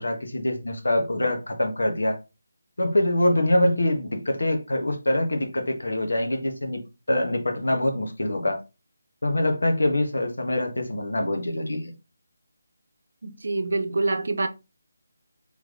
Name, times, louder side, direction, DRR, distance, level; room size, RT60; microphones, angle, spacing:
voice 1, 0.0-2.2 2.8-6.8 7.1-8.6 9.2-11.9, left 1 dB, 85° left, 1.3 m, -24 dB
voice 2, 13.2-14.5, right 3 dB, 70° right, 0.7 m, -26 dB
3.5 x 3.2 x 3.8 m
figure-of-eight pair, 165°, 0 cm